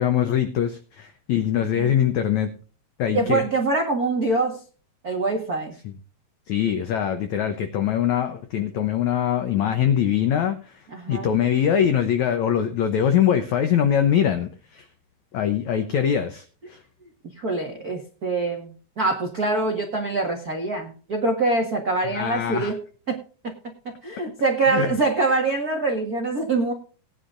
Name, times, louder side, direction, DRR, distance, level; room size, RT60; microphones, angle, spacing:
voice 1, 0.0-2.5 3.0-3.4 5.8-5.9 6.5-14.9 15.3-16.8 22.1-22.8 24.7-24.9, left 9 dB, 80° left, 7 dB, 1.6 m, -23 dB
voice 2, 3.1-4.6 5.0-5.7 10.9-11.3 17.4-22.8 23.1-23.2 23.8-26.7, right 3 dB, 80° right, 2 dB, 0.8 m, -24 dB
19.0 x 10.0 x 2.6 m, 0.38 s
omnidirectional pair, 4.6 m